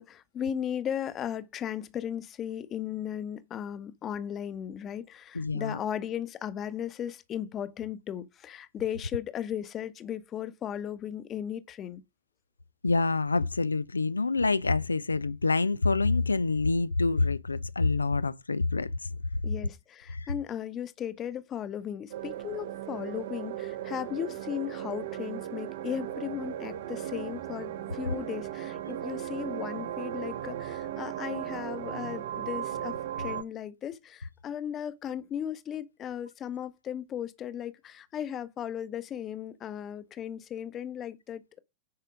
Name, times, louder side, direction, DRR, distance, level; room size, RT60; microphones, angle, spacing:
voice 1, 0.0-12.0 19.4-41.6, left 9 dB, 30° left, 1.0 m, -36 dB
voice 2, 5.3-5.8 12.8-19.1 20.1-20.3, left 3 dB, 80° left, 0.4 m, -27 dB
sound 1, 22.1-33.4, right 11 dB, 55° right, 1.1 m, -37 dB
9.7 x 5.5 x 4.9 m
figure-of-eight pair, 90°, 0 cm